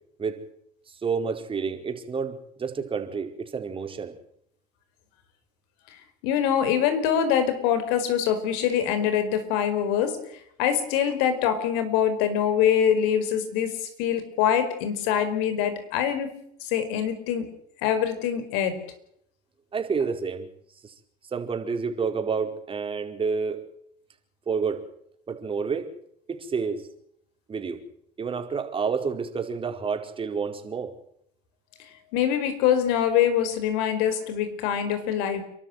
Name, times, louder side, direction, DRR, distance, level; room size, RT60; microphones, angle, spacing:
voice 1, 1.0-4.1 19.7-20.5 20.8-20.9 21.3-23.6 24.5-24.8 25.3-25.9 26.3-26.9 27.5-27.8 28.2-30.9, right 5 dB, 30° right, 4 dB, 4.7 m, -29 dB
voice 2, 6.2-10.2 10.6-16.3 16.6-17.5 17.8-18.8 32.1-35.4, left 9 dB, 75° left, 10 dB, 5.0 m, -24 dB
29.5 x 12.5 x 9.3 m, 0.72 s
supercardioid pair, 90°, 18 cm